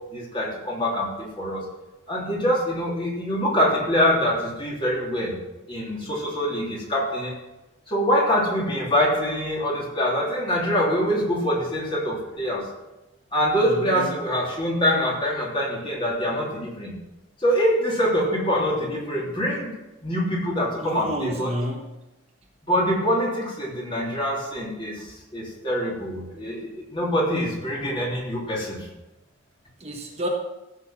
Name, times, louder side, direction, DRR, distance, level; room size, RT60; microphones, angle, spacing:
voice 1, 0.1-1.6 2.1-5.4 5.7-7.3 7.9-12.7 13.3-16.9 17.4-19.8 20.0-21.5 22.7-28.9, equal, 25° left, -3 dB, 3.2 m, -24 dB
voice 2, 13.7-14.2 20.8-22.0 29.8-30.3, equal, 30° right, 1 dB, 1.3 m, -30 dB
15.0 x 6.9 x 5.9 m, 0.99 s
head